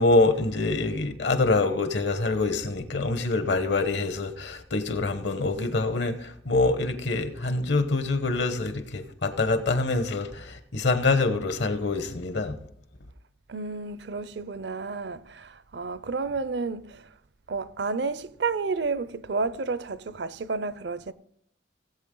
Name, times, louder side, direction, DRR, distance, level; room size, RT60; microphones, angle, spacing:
voice 1, 0.0-12.6, left 3 dB, 70° left, 1.1 m, -25 dB
voice 2, 13.5-17.1 17.5-21.1, right 4 dB, 65° right, 0.6 m, -31 dB
17.5 x 8.2 x 3.8 m
head